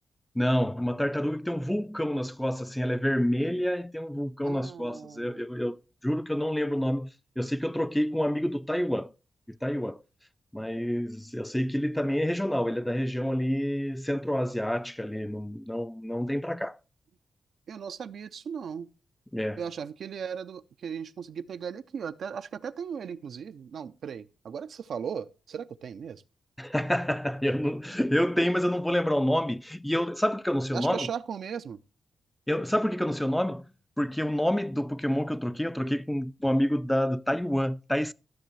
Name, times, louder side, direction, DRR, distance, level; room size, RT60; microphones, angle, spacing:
voice 1, 0.4-5.8 6.0-9.1 9.5-10.0 10.5-16.8 19.3-19.6 26.6-31.1 32.5-33.7 34.0-38.1, equal, 5° left, 0.4 m, -28 dB
voice 2, 4.4-5.4 17.7-18.9 19.6-26.2 30.7-31.8, right 7 dB, 75° right, 0.4 m, -37 dB
12.5 x 6.7 x 3.1 m
supercardioid pair, 50°, 0 cm